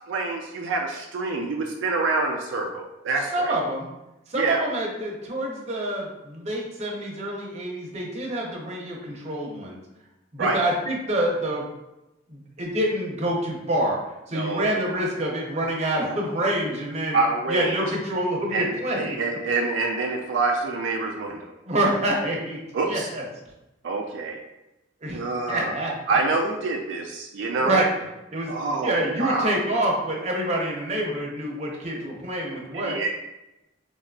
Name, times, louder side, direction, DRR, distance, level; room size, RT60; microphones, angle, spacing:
voice 1, 0.1-3.5 4.4-4.6 10.4-10.6 14.3-14.8 17.1-17.8 18.5-21.5 22.7-23.1 23.8-24.4 25.1-25.8 26.1-27.8 28.5-29.6 32.7-33.1, right 3 dB, 70° right, 1 dB, 0.3 m, -26 dB
voice 2, 3.3-3.9 4.3-9.8 10.3-11.6 12.3-14.0 14.3-17.2 17.5-19.2 21.7-22.6 22.8-23.2 25.0-25.9 27.6-27.9 28.3-28.5 28.8-33.1, right 1 dB, 35° right, -2 dB, 0.6 m, -27 dB
4.4 x 2.3 x 2.2 m, 0.97 s
head